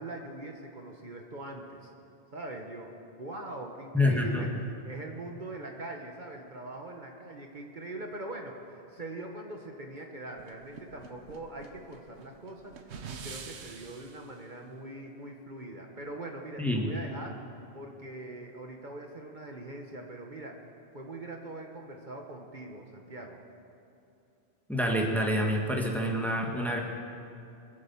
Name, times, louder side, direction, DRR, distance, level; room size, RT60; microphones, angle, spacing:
voice 1, 0.0-1.9 2.3-2.9 3.2-4.5 4.8-17.5 17.7-20.6 20.9-23.4, right 2 dB, 45° right, 1 dB, 1.3 m, -42 dB
voice 2, 3.9-4.5 16.6-16.9 24.7-26.8, left 1 dB, ahead, 1 dB, 1.6 m, -27 dB
sound 1, 10.4-14.3, right 5 dB, 80° right, 1.2 m, -46 dB
24.0 x 8.3 x 7.1 m, 2.7 s
omnidirectional pair, 1.1 m